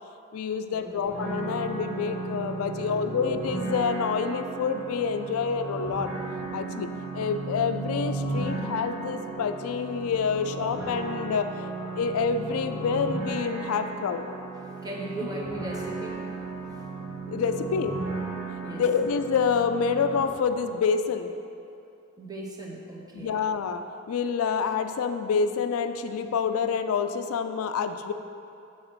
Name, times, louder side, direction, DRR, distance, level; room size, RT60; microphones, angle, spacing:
voice 1, 0.3-6.1 6.5-11.5 11.9-14.2 17.3-18.0 18.7-21.3 23.1-28.1, left 6 dB, 80° left, 9 dB, 0.3 m, -27 dB
sound 1, 1.0-20.2, right 3 dB, 85° right, 1.6 m, -35 dB
voice 2, 2.6-2.9 14.8-16.8 18.6-18.9 22.2-23.5, right 2 dB, 20° right, -3 dB, 0.8 m, -38 dB
6.2 x 4.0 x 5.9 m, 2.6 s
head